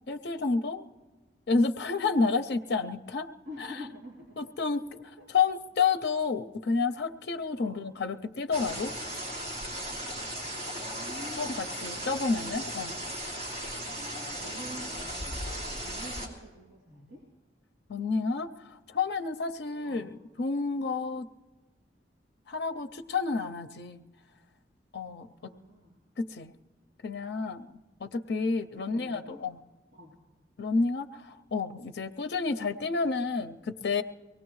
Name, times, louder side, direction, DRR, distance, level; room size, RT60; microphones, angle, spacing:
voice 1, 0.1-0.8 1.5-3.3 4.4-4.8 5.3-8.9 11.4-12.9 17.9-21.3 22.5-24.0 24.9-25.3 26.2-26.5 27.0-29.6 30.6-34.0, left 4 dB, 65° left, 9 dB, 0.5 m, -30 dB
voice 2, 3.4-4.5 4.9-5.3 7.6-7.9 10.4-12.1 13.8-17.2 19.8-20.1 25.4-26.0 28.7-29.4 29.9-30.2, equal, 80° right, -5 dB, 3.2 m, -48 dB
sound 1, 8.5-16.3, equal, 35° right, 2.7 m, -37 dB
23.0 x 18.0 x 3.1 m, 1.3 s
head